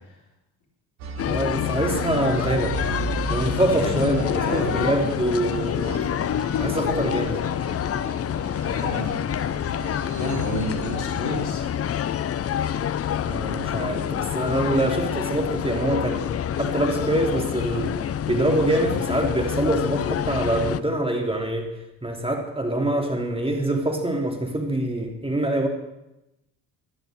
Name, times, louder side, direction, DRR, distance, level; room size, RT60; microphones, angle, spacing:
sound 1, 1.0-11.2, right 4 dB, 75° right, 1.8 m, -36 dB
sound 2, 1.2-20.8, left 9 dB, 30° left, 0.6 m, -27 dB
voice 1, 1.3-2.8 3.3-6.0 6.6-7.6 13.2-16.2 16.6-18.0 18.3-21.7 22.0-25.7, right 1 dB, 10° right, 2 dB, 3.1 m, -25 dB
voice 2, 3.3-5.1 8.6-9.1 10.1-11.6, left 2 dB, 65° left, 0 dB, 4.5 m, -30 dB
13.5 x 12.5 x 6.5 m, 0.92 s
figure-of-eight pair, 50°, 50 cm